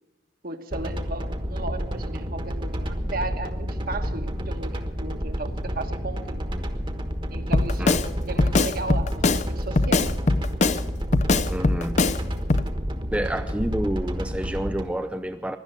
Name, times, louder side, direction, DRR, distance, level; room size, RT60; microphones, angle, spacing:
voice 1, 0.4-6.4 7.3-10.2, right 2 dB, 50° right, 7 dB, 1.3 m, -35 dB
sound 1, 0.7-14.8, equal, 25° right, 1.3 m, -30 dB
Drum kit, 7.5-8.1 8.4-9.4 9.8-10.8 11.1-12.2 12.5-12.7, left 2 dB, 35° left, 0.6 m, -21 dB
voice 2, 11.5-12.0 13.1-15.6, right 1 dB, 5° right, 7 dB, 0.5 m, -29 dB
17.0 x 11.5 x 6.8 m, 1.1 s
head